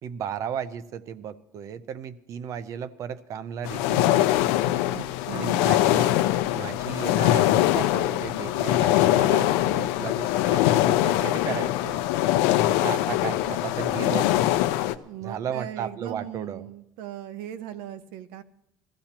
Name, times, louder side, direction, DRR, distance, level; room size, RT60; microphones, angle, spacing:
voice 1, 0.0-4.5 5.3-12.0 12.8-14.3 15.2-16.7, right 8 dB, 40° right, 14 dB, 0.6 m, -35 dB
sound 1, 3.6-14.9, left 14 dB, 85° left, 0.6 m, -23 dB
voice 2, 4.9-5.6 15.0-18.4, right 11 dB, 75° right, 11 dB, 0.9 m, -39 dB
21.0 x 15.0 x 2.9 m, 0.83 s
cardioid pair, 160°, 9 cm